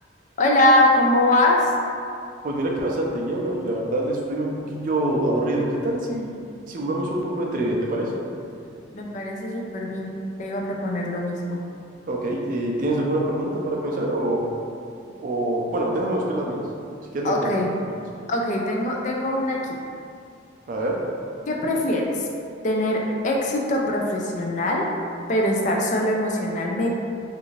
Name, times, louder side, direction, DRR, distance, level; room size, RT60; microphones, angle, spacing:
voice 1, 0.4-1.7 8.9-10.1 10.4-11.6 17.2-17.7 18.3-19.8 21.5-22.3 22.6-24.8 25.3-26.9, left 1 dB, 40° left, -1 dB, 0.3 m, -22 dB
voice 2, 2.4-8.2 12.1-14.5 15.2-16.6 17.1-17.5 20.7-21.0, right 1 dB, 45° right, -1 dB, 0.3 m, -25 dB
2.6 x 2.4 x 3.0 m, 2.5 s
head